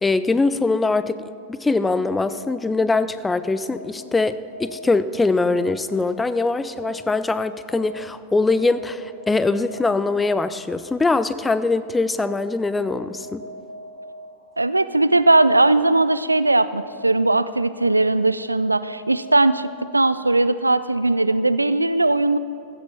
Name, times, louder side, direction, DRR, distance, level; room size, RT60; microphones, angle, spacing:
voice 1, 0.0-13.4, left 3 dB, 10° left, 14 dB, 0.4 m, -22 dB
sound 1, 1.7-20.2, left 1 dB, 90° left, 1.1 m, -42 dB
voice 2, 14.6-22.4, right 2 dB, 85° right, 15 dB, 0.3 m, -19 dB
15.5 x 7.4 x 5.4 m, 2.4 s
figure-of-eight pair, 90°, 0 cm